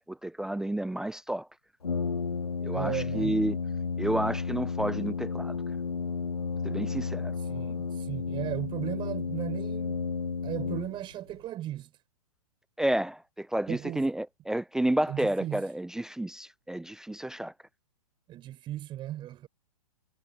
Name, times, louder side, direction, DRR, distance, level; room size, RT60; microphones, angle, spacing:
voice 1, 0.0-1.5 2.6-3.6 4.0-5.6 6.6-7.3 12.8-17.5, right 1 dB, 5° right, 0.6 m, -30 dB
Brass instrument, 1.8-11.3, left 5 dB, 80° left, 2.5 m, -32 dB
voice 2, 2.7-3.3 7.4-10.0 10.4-11.9 13.7-14.1 15.1-15.6 18.3-19.5, right 13 dB, 25° right, 6.2 m, -36 dB
figure-of-eight pair, 115°, 19 cm